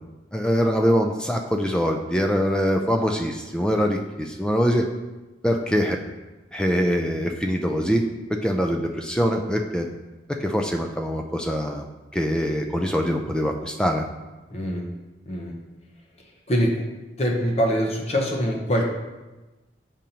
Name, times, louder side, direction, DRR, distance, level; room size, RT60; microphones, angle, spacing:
voice 1, 0.3-4.9 5.4-6.0 6.5-8.0 8.3-9.9 10.3-11.8 12.1-14.1, equal, 5° left, 3 dB, 0.4 m, -23 dB
voice 2, 14.5-14.9 15.3-15.5 16.5-16.8 17.2-18.8, equal, 35° left, 0 dB, 0.8 m, -23 dB
7.3 x 5.2 x 2.9 m, 1.1 s
head